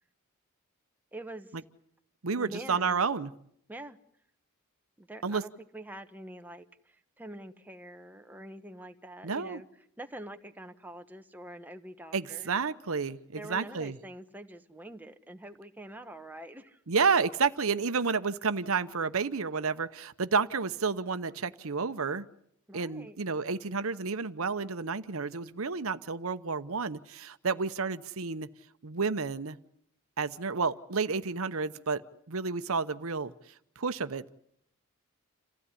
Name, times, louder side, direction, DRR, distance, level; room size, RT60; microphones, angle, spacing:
voice 1, 1.1-1.6 2.3-3.0 3.7-4.0 5.0-9.7 10.0-12.5 13.4-16.8 22.7-23.2, right 1 dB, 10° right, 6 dB, 1.1 m, -45 dB
voice 2, 2.2-3.3 5.2-5.4 9.2-9.6 12.1-13.9 16.9-22.2 22.7-28.5 28.8-29.6 30.2-32.0 32.3-33.3 33.8-34.3, right 5 dB, 70° right, 12 dB, 0.9 m, -30 dB
28.0 x 15.5 x 9.8 m, 0.71 s
head